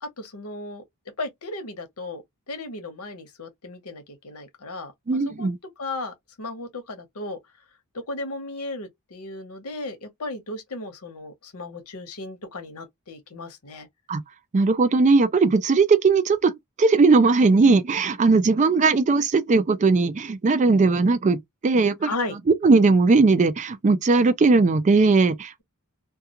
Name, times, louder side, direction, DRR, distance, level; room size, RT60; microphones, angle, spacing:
voice 1, 0.0-0.8 1.2-2.2 2.5-7.4 7.9-13.9 22.0-22.4, left 2 dB, 80° left, 0.9 m, -35 dB
voice 2, 5.1-5.6 14.1-14.2 14.5-16.5 16.8-21.4 21.6-22.1 22.6-25.5, right 3 dB, 35° right, 0.4 m, -18 dB
2.3 x 2.3 x 2.8 m
head